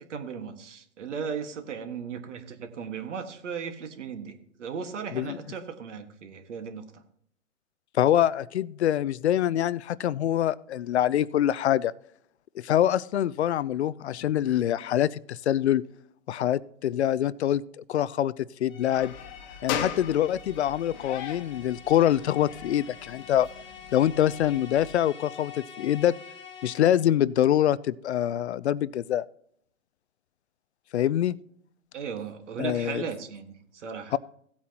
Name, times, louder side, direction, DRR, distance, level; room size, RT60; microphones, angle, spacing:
voice 1, 0.1-6.8 31.9-34.1, right 6 dB, 60° right, 7 dB, 1.7 m, -36 dB
voice 2, 7.9-11.9 12.6-15.8 16.3-17.6 17.9-19.1 19.6-23.5 23.9-26.1 26.6-29.3 30.9-31.4 32.6-33.0 34.1-34.2, left 11 dB, 55° left, 20 dB, 0.5 m, -25 dB
sound 1, 18.7-27.1, left 7 dB, 10° left, 1.5 m, -46 dB
sound 2, 18.9-25.0, left 8 dB, 35° left, 1.2 m, -39 dB
17.0 x 8.6 x 2.9 m, 0.67 s
hypercardioid pair, 140°, 40 cm